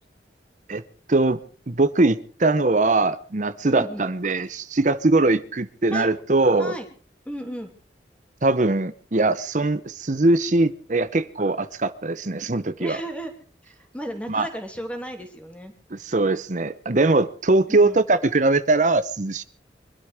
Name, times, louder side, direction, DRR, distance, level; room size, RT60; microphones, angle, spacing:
voice 1, 1.1-1.4 1.7-6.7 8.4-13.0 14.3-14.5 15.9-19.4, right 2 dB, 45° right, 14 dB, 0.8 m, -21 dB
voice 2, 3.7-4.0 5.9-6.1 6.6-6.9 7.3-7.7 12.8-13.3 13.7-15.7 17.7-18.0, equal, 5° left, 4 dB, 2.8 m, -34 dB
24.0 x 12.0 x 4.9 m, 0.44 s
head